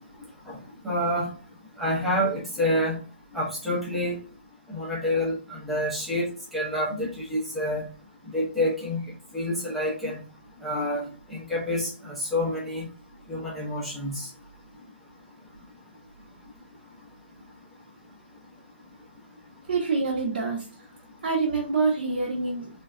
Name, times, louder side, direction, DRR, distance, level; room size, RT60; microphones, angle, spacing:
voice 1, 0.8-1.3 1.8-3.0 3.3-4.2 4.7-7.9 8.3-10.2 10.6-12.9 13.3-14.3, left 1 dB, ahead, -6 dB, 0.6 m, -28 dB
voice 2, 19.7-20.9 21.2-22.7, right 4 dB, 45° right, -4 dB, 0.8 m, -26 dB
3.2 x 2.1 x 2.4 m, 0.35 s
hypercardioid pair, 165°, 7 cm